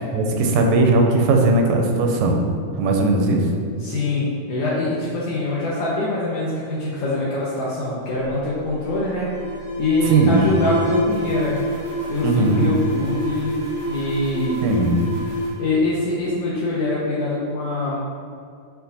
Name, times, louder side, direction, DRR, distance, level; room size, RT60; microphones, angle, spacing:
voice 1, 0.1-2.4 2.8-3.5 10.1-10.5 12.2-12.7 14.6-15.1, right 2 dB, 85° right, 2 dB, 2.4 m, -18 dB
voice 2, 3.8-9.3 9.8-11.6 12.1-13.6 13.8-14.6 15.6-18.0, left 2 dB, 75° left, -6 dB, 1.4 m, -24 dB
Alarm, 8.1-16.7, equal, 40° left, 1.0 m, -28 dB
7.0 x 4.5 x 4.0 m, 2.3 s
omnidirectional pair, 3.9 m